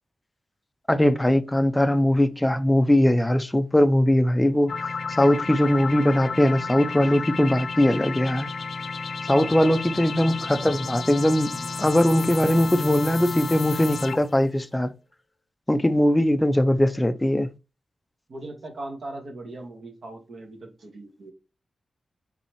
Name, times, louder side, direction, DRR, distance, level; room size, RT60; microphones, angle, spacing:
voice 1, 0.9-4.9 5.2-8.5 9.3-11.5 11.8-14.9 15.7-17.5, left 1 dB, 10° left, 0.5 m, -20 dB
sound 1, 4.7-14.4, left 4 dB, 65° left, 0.5 m, -32 dB
voice 2, 9.3-10.0 11.5-11.7 18.3-21.3, right 2 dB, 65° right, 1.5 m, -38 dB
4.1 x 4.0 x 3.0 m
wide cardioid pair, 115°, 0 cm